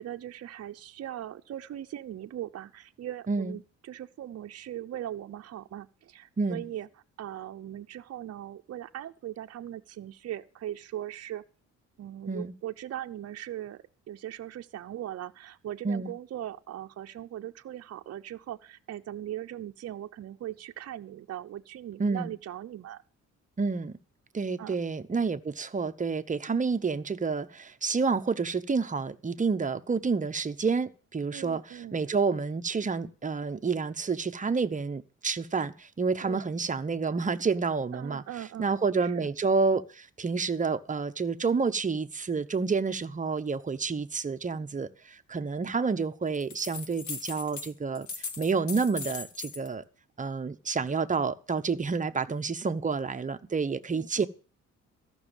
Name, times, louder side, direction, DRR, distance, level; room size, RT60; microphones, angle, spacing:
voice 1, 0.0-6.9 7.2-11.4 12.0-23.0 24.6-24.8 31.3-32.0 36.2-36.5 37.9-39.3 53.6-54.3, right 12 dB, 55° right, 0.8 m, -40 dB
voice 2, 22.0-22.3 23.6-24.0 24.3-38.2 38.6-48.1 48.4-49.8 50.2-54.3, right 4 dB, 25° right, 1.0 m, -29 dB
sound 1, 46.3-47.7 48.0-49.7, left 5 dB, 70° left, 2.1 m, -39 dB
14.0 x 6.3 x 9.0 m
cardioid pair, 90°, 30 cm